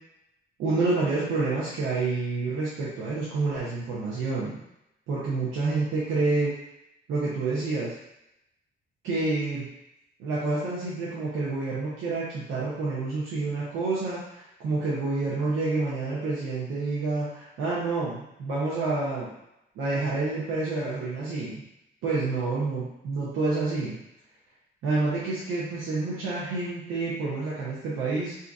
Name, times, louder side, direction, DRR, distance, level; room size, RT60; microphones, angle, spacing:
voice 1, 0.6-4.6 5.1-6.6 7.1-7.9 9.0-9.7 10.2-19.3 19.8-21.6 22.0-24.0 24.8-28.3, right 3 dB, 90° right, -8 dB, 0.8 m, -28 dB
2.8 x 2.5 x 3.5 m, 0.85 s
cardioid pair, 90°, 20 cm